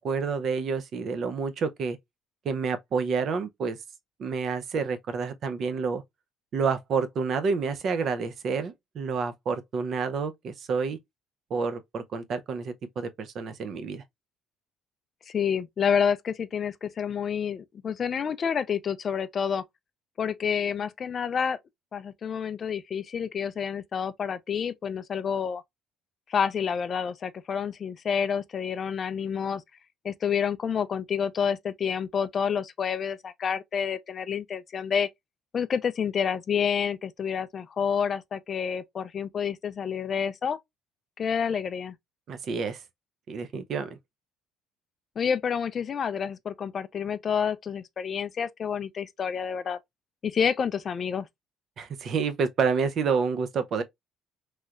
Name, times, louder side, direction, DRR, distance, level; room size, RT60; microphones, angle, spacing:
voice 1, 0.0-2.0 2.4-3.8 4.2-6.0 6.5-11.0 11.5-14.0 42.3-42.8 43.3-44.0 51.8-53.8, right 5 dB, 45° right, 0.5 m, -29 dB
voice 2, 15.3-19.6 20.2-21.6 21.9-25.6 26.3-29.6 30.0-35.1 35.5-40.6 41.2-41.9 45.2-49.8 50.2-51.3, left 7 dB, 35° left, 0.3 m, -29 dB
3.1 x 2.8 x 2.3 m
cardioid pair, 125°, 0 cm